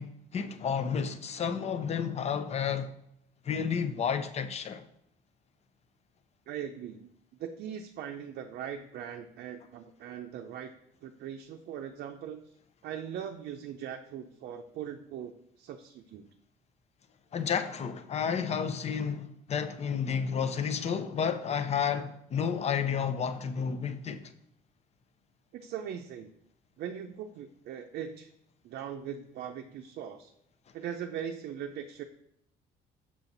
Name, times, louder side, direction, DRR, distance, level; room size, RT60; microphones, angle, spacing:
voice 1, 0.0-2.9 3.4-4.9 17.3-24.2, left 7 dB, 40° left, 0.6 m, -31 dB
voice 2, 6.5-7.1 7.4-10.7 11.0-12.5 12.8-16.3 25.5-26.3 26.8-28.3 28.6-30.3 30.7-32.0, right 9 dB, 70° right, 0.5 m, -40 dB
6.2 x 5.8 x 3.9 m
cardioid pair, 110°, 17 cm